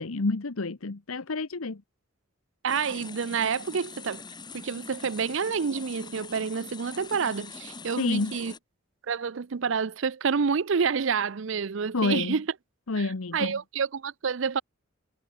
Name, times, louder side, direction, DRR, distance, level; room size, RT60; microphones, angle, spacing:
voice 1, 0.0-1.8 8.0-8.4 11.9-12.4 12.9-13.6, left 3 dB, 90° left, 1.0 m, -29 dB
voice 2, 2.6-4.2 4.5-8.5 9.1-12.5 13.0-14.6, right 6 dB, 65° right, 0.5 m, -28 dB
sound 1, 2.7-8.6, left 4 dB, 20° left, 1.8 m, -43 dB
head